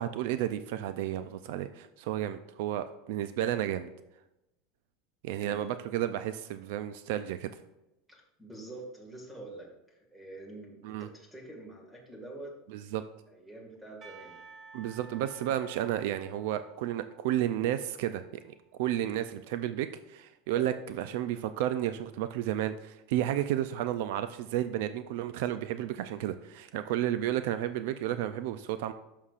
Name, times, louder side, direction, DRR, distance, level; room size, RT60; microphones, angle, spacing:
voice 1, 0.0-3.9 5.2-7.5 10.8-11.1 12.7-13.0 14.7-28.9, right 12 dB, 65° right, 11 dB, 0.4 m, -32 dB
voice 2, 8.1-12.5 12.8-13.0 13.3-14.4 20.6-20.7, right 2 dB, 5° right, -1 dB, 1.8 m, -46 dB
Percussion / Church bell, 14.0-18.8, right 5 dB, 30° right, 0.9 m, -54 dB
11.0 x 6.5 x 2.5 m, 0.92 s
supercardioid pair, 165°, 0 cm